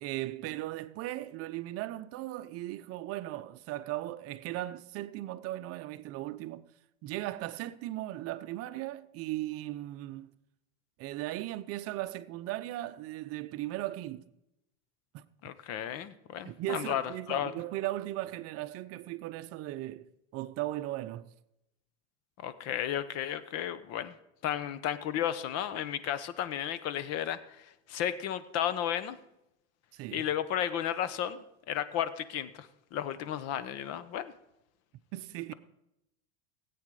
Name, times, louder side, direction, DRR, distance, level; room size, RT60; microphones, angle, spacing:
voice 1, 0.0-6.7 7.0-10.3 11.0-14.3 15.1-15.3 16.4-21.3 29.9-30.2 35.1-35.5, right 15 dB, 50° right, 0.7 m, -37 dB
voice 2, 15.4-17.0 17.3-17.5 22.4-24.1 24.4-29.2 30.1-34.3, left 10 dB, 50° left, 1.0 m, -33 dB
17.5 x 8.5 x 4.9 m
supercardioid pair, 135°, 32 cm